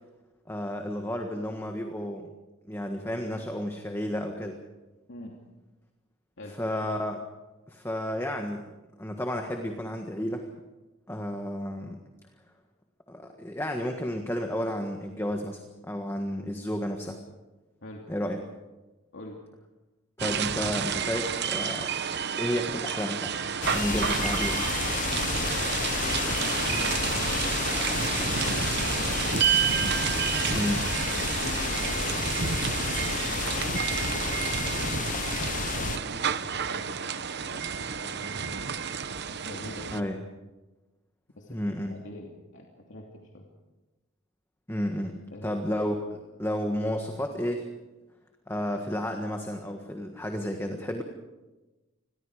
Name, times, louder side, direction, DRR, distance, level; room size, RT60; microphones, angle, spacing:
voice 1, 0.5-2.3 2.7-4.6 6.6-7.2 7.7-8.6 9.0-10.5 11.1-12.0 13.1-17.2 18.1-18.4 20.2-24.7 30.5-30.9 39.9-40.2 41.5-41.9 44.7-47.7 48.5-51.0, equal, 10° left, 4 dB, 1.6 m, -32 dB
sound 1, 20.2-40.0, right 7 dB, 55° right, 1.0 m, -30 dB
sound 2, 23.6-36.0, left 5 dB, 40° left, 0.7 m, -31 dB
voice 2, 26.0-27.7 28.2-29.3 30.1-30.2 31.4-33.6 34.1-37.7 38.0-38.7 39.3-40.1 41.4-43.5 45.3-45.7, left 1 dB, 65° left, -1 dB, 2.8 m, -44 dB
29.0 x 22.0 x 5.0 m, 1.1 s
head